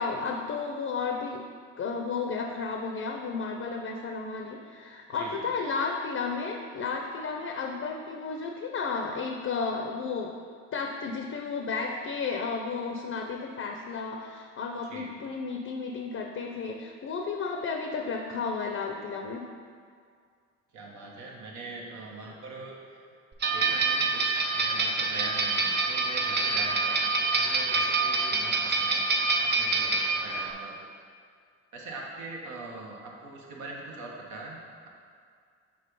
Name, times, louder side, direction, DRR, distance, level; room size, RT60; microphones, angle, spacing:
voice 1, 0.0-1.4 1.8-10.3 10.7-19.4, left 4 dB, 45° left, 2 dB, 0.6 m, -33 dB
voice 2, 5.1-5.5 14.9-15.2 20.7-23.1 23.5-27.1 27.4-30.9 31.7-34.9, right 3 dB, 75° right, -2 dB, 1.2 m, -42 dB
sound 1, 23.4-30.5, right 3 dB, 35° right, 0.7 m, -26 dB
5.5 x 3.5 x 5.4 m, 2.1 s
cardioid pair, 90°, 30 cm